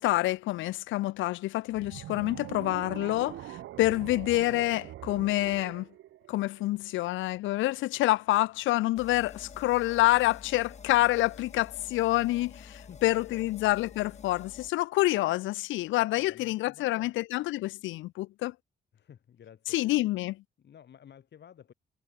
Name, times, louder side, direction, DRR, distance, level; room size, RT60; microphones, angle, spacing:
voice 1, 0.0-5.9 6.3-18.5 19.7-20.4, left 17 dB, 80° left, 0.4 m, -27 dB
sound 1, 1.7-7.0, right 14 dB, 75° right, 0.9 m, -43 dB
sound 2, 9.0-14.7, left 6 dB, 35° left, 1.4 m, -49 dB
voice 2, 12.9-13.7 16.1-17.2 18.9-20.0 20.6-21.7, left 9 dB, 60° left, 7.2 m, -53 dB
cardioid pair, 90°, 20 cm